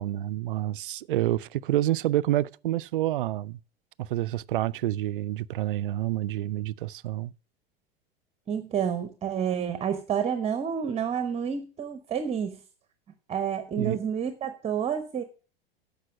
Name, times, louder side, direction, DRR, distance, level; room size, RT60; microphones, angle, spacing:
voice 1, 0.0-3.6 4.0-7.3 13.8-14.0, right 14 dB, 60° right, 0.5 m, -28 dB
voice 2, 8.5-12.6 13.3-15.2, right 8 dB, 20° right, 0.9 m, -29 dB
13.5 x 5.5 x 6.0 m
figure-of-eight pair, 85°, 30 cm